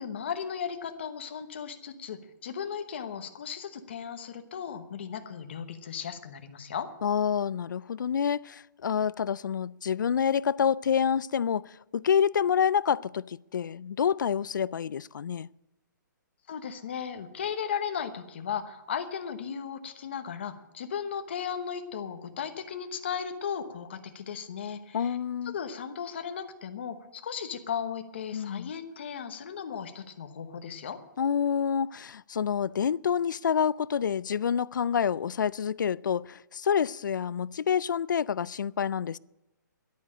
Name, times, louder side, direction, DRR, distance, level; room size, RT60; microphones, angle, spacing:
voice 1, 0.0-6.9 16.5-25.2 25.4-31.0, left 7 dB, 35° left, 1.0 m, -36 dB
voice 2, 7.0-15.5 24.9-25.5 28.3-28.7 31.2-39.2, left 7 dB, 75° left, 0.4 m, -28 dB
11.5 x 9.1 x 8.6 m
hypercardioid pair, 180°, 11 cm